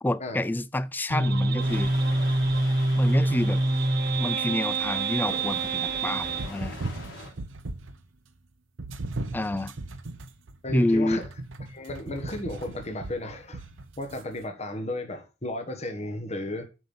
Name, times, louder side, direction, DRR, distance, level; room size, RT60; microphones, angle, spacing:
voice 1, 0.0-1.9 3.0-3.6 4.2-6.8 9.3-9.7 10.7-11.2, left 1 dB, 10° left, 0.3 m, -27 dB
sound 1, 1.1-6.5, right 2 dB, 55° right, 0.8 m, -25 dB
sound 2, 1.6-7.3, left 2 dB, 80° left, 3.6 m, -42 dB
sound 3, 6.3-8.1 8.8-14.2, right 2 dB, 90° right, 0.8 m, -37 dB
voice 2, 10.6-11.3 11.7-13.6 14.0-16.6, left 1 dB, 35° left, 1.3 m, -34 dB
8.0 x 5.4 x 5.5 m
head